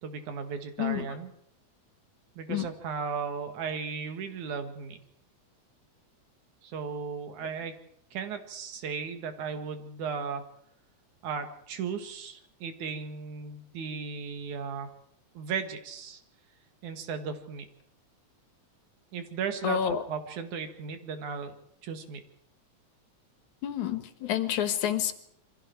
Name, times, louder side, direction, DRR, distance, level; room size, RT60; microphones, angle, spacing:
voice 1, 0.0-1.3 2.4-5.0 6.6-7.7 8.1-10.4 11.2-14.9 15.3-16.2 16.8-17.7 19.1-21.5 21.8-22.2, right 6 dB, 85° right, 7 dB, 3.3 m, -36 dB
voice 2, 0.8-1.2 2.5-2.7 19.6-20.0 23.6-25.1, left 9 dB, 85° left, 10 dB, 2.8 m, -29 dB
27.5 x 23.0 x 4.6 m, 0.69 s
omnidirectional pair, 3.3 m